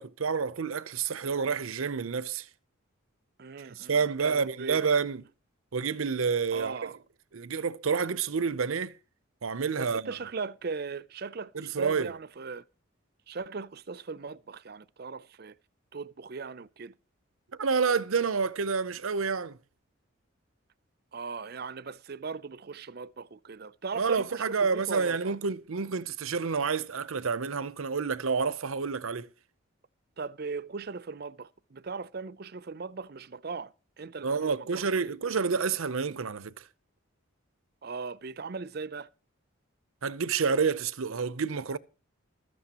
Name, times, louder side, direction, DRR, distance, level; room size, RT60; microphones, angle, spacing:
voice 1, 0.0-2.5 3.7-5.2 5.7-6.9 7.3-8.9 9.4-10.1 11.5-12.1 17.6-19.6 24.0-29.3 34.2-36.6 40.0-41.8, right 5 dB, 85° right, 0.7 m, -29 dB
voice 2, 3.4-4.9 6.5-7.0 9.8-12.7 13.3-15.6 15.9-16.9 21.1-25.4 30.2-35.1 37.8-39.1, right 4 dB, 45° right, 0.5 m, -39 dB
16.0 x 13.5 x 2.9 m
head